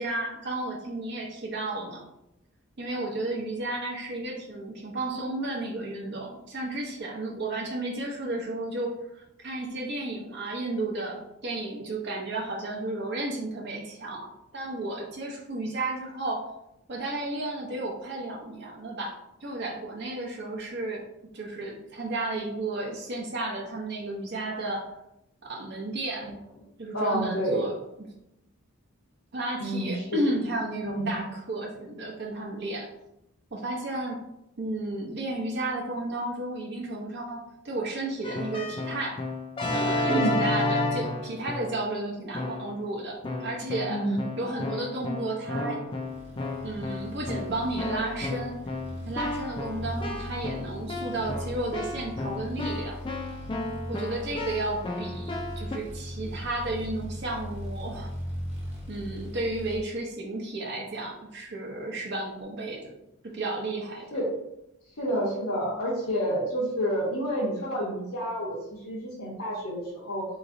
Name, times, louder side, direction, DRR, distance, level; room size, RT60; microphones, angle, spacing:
voice 1, 0.0-2.0 2.8-16.5 16.9-21.0 21.3-24.9 25.4-26.4 26.8-27.7 29.3-32.9 33.5-34.2 34.6-39.3 39.7-44.0 44.4-45.8 46.6-48.6 49.1-53.0 53.9-58.1 58.9-62.9 63.2-64.1, right 2 dB, 50° right, -1 dB, 0.6 m, -33 dB
voice 2, 26.9-27.6 29.6-30.2 30.8-31.2 40.1-40.4 43.9-44.2 64.1-64.3 65.0-70.3, equal, 75° left, -8 dB, 0.9 m, -29 dB
Keyboard (musical), 38.2-41.9 42.3-42.8 43.2-55.8, left 2 dB, 25° left, 0.3 m, -32 dB
sound 1, 46.0-59.8, equal, 30° right, 1.0 m, -39 dB
3.7 x 3.0 x 2.6 m, 0.83 s
head